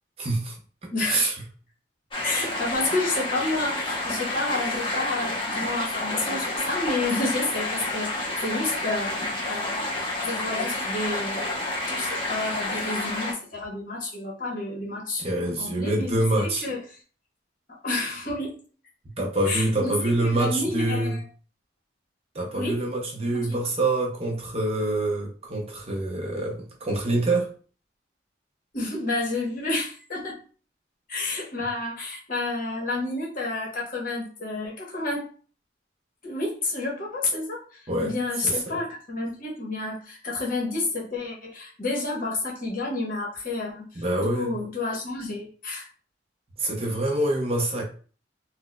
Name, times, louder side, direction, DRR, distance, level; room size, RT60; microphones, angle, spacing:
voice 1, 0.2-0.6 0.8-1.3 15.2-16.7 19.2-21.2 22.3-27.5 37.9-38.1 38.4-38.8 44.0-44.5 46.6-47.9, right 2 dB, 30° right, 0 dB, 0.5 m, -26 dB
voice 2, 0.9-1.3 2.2-11.5 11.9-16.1 16.6-16.8 17.7-18.6 19.4-19.9 20.2-21.2 22.5-22.8 23.3-23.6 28.7-30.4 31.1-35.3 36.2-44.0 44.3-45.9, left 2 dB, 45° left, -2 dB, 1.0 m, -30 dB
sound 1, 2.1-13.3, left 2 dB, 25° left, 0.7 m, -29 dB
4.1 x 2.0 x 2.2 m, 0.40 s
head